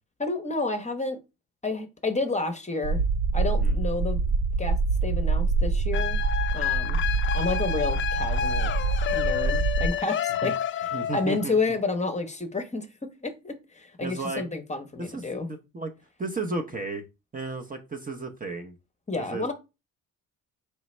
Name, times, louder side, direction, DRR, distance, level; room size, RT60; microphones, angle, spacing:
voice 1, 0.2-1.2 1.6-3.0 3.3-4.2 4.6-6.2 6.5-7.0 7.3-8.7 9.1-10.5 10.8-12.9 13.2-15.5 19.1-19.5, left 3 dB, 20° left, 0.8 m, -30 dB
sound 1, 2.8-9.9, right 4 dB, 70° right, 0.6 m, -25 dB
sound 2, 5.9-11.4, left 9 dB, 35° left, 0.4 m, -29 dB
voice 2, 10.9-11.6 14.0-14.4 15.0-15.2 15.5-15.9 16.2-17.0 17.3-18.7 19.2-19.5, right 3 dB, 25° right, 0.7 m, -33 dB
3.9 x 3.2 x 3.1 m
supercardioid pair, 70°, 35 cm